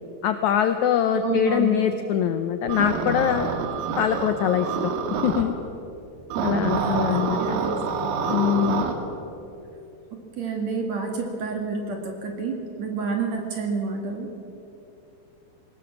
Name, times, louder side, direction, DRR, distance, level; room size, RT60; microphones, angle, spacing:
voice 1, 0.2-3.5 4.0-4.7 5.2-5.5 6.4-7.6 8.3-8.9, left 9 dB, 80° left, 8 dB, 1.7 m, -23 dB
voice 2, 1.1-1.8 6.4-7.8 10.1-14.3, right 4 dB, 50° right, 2 dB, 3.2 m, -29 dB
sound 1, 2.7-5.4 6.3-8.9, right 5 dB, 85° right, 3.5 m, -27 dB
21.5 x 18.0 x 7.4 m, 2.8 s
omnidirectional pair, 4.3 m